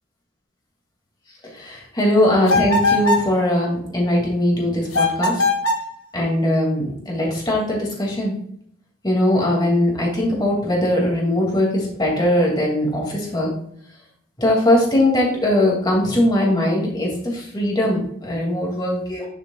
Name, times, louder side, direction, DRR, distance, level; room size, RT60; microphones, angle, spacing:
voice 1, 1.6-5.4 6.1-8.3 9.0-13.5 14.4-19.3, left 1 dB, 20° left, -2 dB, 2.6 m, -20 dB
sound 1, 2.5-3.3 4.9-5.9, left 2 dB, 80° left, 1.3 m, -20 dB
9.8 x 7.0 x 2.4 m, 0.68 s
head